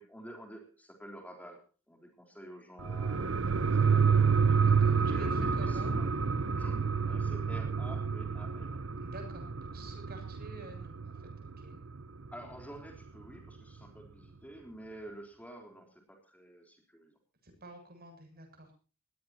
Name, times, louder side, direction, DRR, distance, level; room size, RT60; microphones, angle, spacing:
voice 1, 0.0-4.2 4.5-6.2 6.6-8.8 12.3-17.2, right 1 dB, 5° left, 3 dB, 3.7 m, -49 dB
sound 1, 2.8-11.9 12.3-12.4, right 5 dB, 65° right, 0.9 m, -29 dB
voice 2, 4.6-5.9 9.0-11.2 11.4-11.8 17.4-18.7, right 1 dB, 45° right, 6 dB, 7.6 m, -50 dB
21.5 x 18.0 x 2.9 m, 0.37 s
head